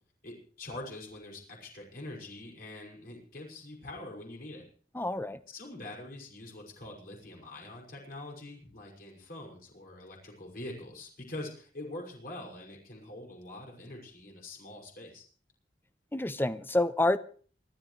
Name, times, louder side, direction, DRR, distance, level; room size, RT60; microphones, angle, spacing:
voice 1, 0.2-4.6 5.5-15.2, left 1 dB, 55° left, 5.9 m, -44 dB
voice 2, 4.9-5.4 16.1-17.2, left 2 dB, 15° left, 0.7 m, -28 dB
28.0 x 12.5 x 3.2 m
head